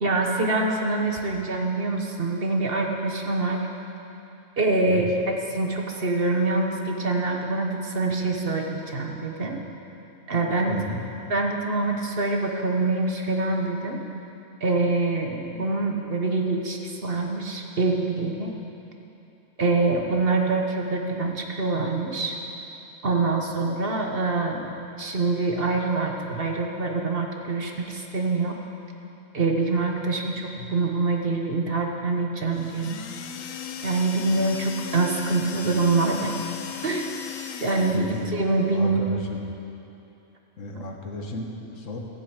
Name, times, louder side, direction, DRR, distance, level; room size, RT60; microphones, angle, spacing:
voice 1, 0.0-3.7 4.6-9.6 10.3-10.8 11.3-14.0 14.6-18.5 19.6-22.4 23.0-24.7 25.0-28.5 29.3-33.0 33.8-36.3 36.8-37.1 37.6-39.0 40.7-40.9, right 3 dB, 50° right, 2 dB, 1.3 m, -25 dB
voice 2, 10.7-11.0 30.5-30.8 37.9-38.4 38.7-39.4 40.6-42.0, left 2 dB, 70° left, 1 dB, 1.7 m, -34 dB
sound 1, 32.5-38.4, left 8 dB, 90° left, 1.1 m, -37 dB
15.0 x 7.8 x 8.1 m, 2.9 s
omnidirectional pair, 1.3 m